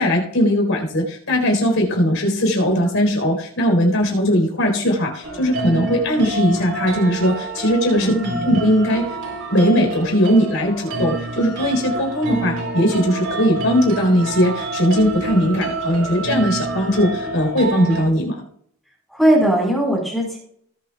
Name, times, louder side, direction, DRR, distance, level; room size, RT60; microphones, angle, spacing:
voice 1, 0.0-8.1 8.4-9.1 9.5-18.4, equal, 65° left, 1 dB, 4.3 m, -19 dB
sound 1, 5.2-18.1, right 2 dB, 85° right, 3.9 m, -28 dB
voice 2, 8.0-8.4 19.1-20.4, right 1 dB, ahead, -3 dB, 4.7 m, -19 dB
19.0 x 8.7 x 2.4 m, 0.66 s
head